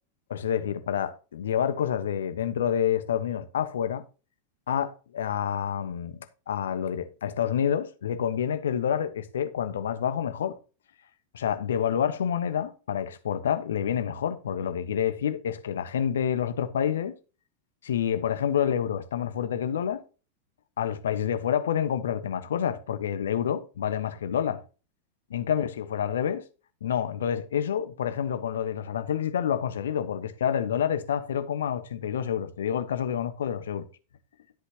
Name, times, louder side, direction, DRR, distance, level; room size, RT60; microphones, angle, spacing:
voice 1, 0.3-4.0 4.7-6.2 6.5-10.6 11.3-17.2 17.8-20.0 20.8-24.6 25.3-26.4 26.8-33.9, left 8 dB, 65° left, 1.2 m, -28 dB
13.0 x 8.1 x 2.9 m
figure-of-eight pair, 90°, 0 cm